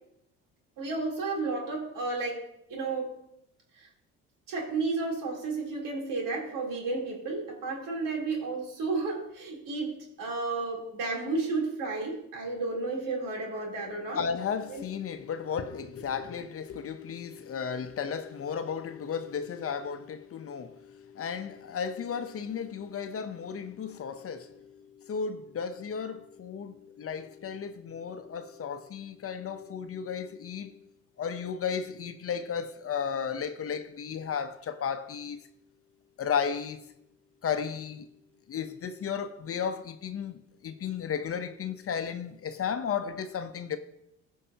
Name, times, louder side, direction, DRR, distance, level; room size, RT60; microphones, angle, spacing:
voice 1, 0.8-3.2 3.7-3.9 4.5-14.2 14.7-14.8, right 3 dB, 70° right, 3.4 m, -32 dB
voice 2, 14.1-30.8 31.2-35.4 36.2-36.8 37.4-38.1 38.5-43.8, left 7 dB, 40° left, 0.8 m, -34 dB
16.5 x 5.6 x 2.8 m
supercardioid pair, 75°, 34 cm